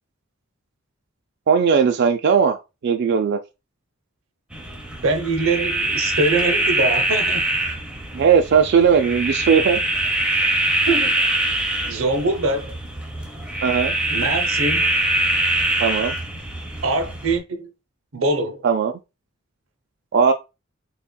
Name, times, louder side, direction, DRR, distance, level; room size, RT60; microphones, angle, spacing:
voice 1, 1.5-3.4 8.1-9.8 13.6-14.0 15.8-16.2 18.6-18.9 20.1-20.3, right 6 dB, 55° right, 0.3 m, -18 dB
sound 1, 4.5-17.4, right 1 dB, 5° right, 0.7 m, -23 dB
voice 2, 5.0-7.5 10.4-10.5 10.9-11.3 11.8-12.8 14.1-14.9 16.8-17.7 18.1-18.6, right 2 dB, 90° right, 0.7 m, -23 dB
4.1 x 3.4 x 2.2 m
head